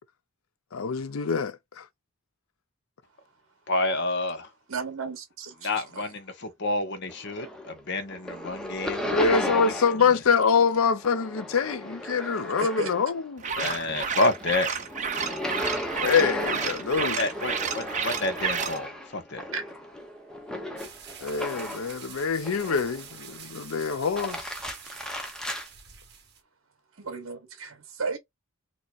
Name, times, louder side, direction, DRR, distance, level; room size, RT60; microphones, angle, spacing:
voice 1, 0.7-1.8 9.1-13.7 16.0-17.2 21.2-24.5, left 5 dB, 85° left, 0.6 m, -25 dB
voice 2, 3.7-4.5 5.6-9.7 10.1-10.2 13.6-14.7 17.0-19.5, left 2 dB, 60° left, 1.0 m, -29 dB
voice 3, 4.7-5.7 12.6-12.9 19.5-19.6 27.0-28.2, right 4 dB, 70° right, 1.0 m, -33 dB
sound 1, 7.1-7.8 8.1-10.1 10.4-13.2 13.6-22.0 22.4-23.1 23.9-25.7, left 1 dB, 5° left, 0.7 m, -35 dB
sound 2, 13.4-18.8, right 6 dB, 35° right, 0.7 m, -31 dB
sound 3, 20.8-26.4, right 7 dB, 55° right, 1.2 m, -46 dB
4.4 x 2.8 x 2.4 m
head